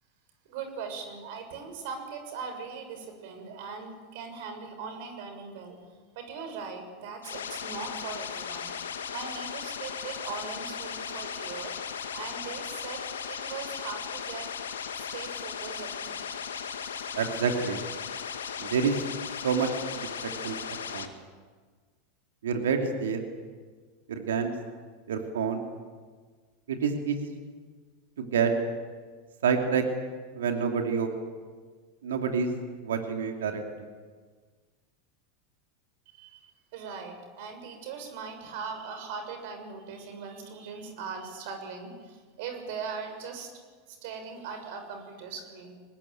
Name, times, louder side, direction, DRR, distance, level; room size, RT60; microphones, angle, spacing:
voice 1, 0.4-5.8 6.1-8.7 9.1-11.8 12.1-14.5 14.9-16.3 36.1-43.5 43.9-45.7, right 5 dB, 60° right, 6 dB, 6.6 m, -40 dB
sound 1, 7.2-21.1, left 7 dB, 80° left, 2.2 m, -37 dB
voice 2, 17.2-17.8 18.6-19.0 19.4-19.7 20.0-20.6 20.9-21.1 22.4-23.3 24.1-24.5 25.1-25.6 26.7-27.3 28.2-28.5 29.4-29.8 30.3-31.1 32.0-32.5 32.8-33.6, right 6 dB, 75° right, 4 dB, 2.9 m, -28 dB
24.5 x 20.5 x 9.4 m, 1.5 s
hypercardioid pair, 90°, 0 cm